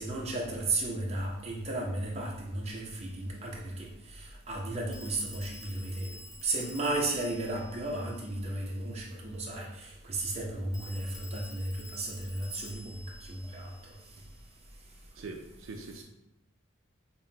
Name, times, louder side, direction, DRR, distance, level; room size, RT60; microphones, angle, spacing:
voice 1, 0.0-6.1 6.4-13.7, right 2 dB, 30° right, -2 dB, 0.6 m, -34 dB
Telephone, 2.7-2.8 4.9-8.6 10.7-14.4, left 1 dB, 15° left, 0.4 m, -51 dB
voice 2, 15.1-16.0, right 3 dB, 70° right, 3 dB, 0.4 m, -42 dB
5.4 x 2.1 x 2.7 m, 0.95 s
head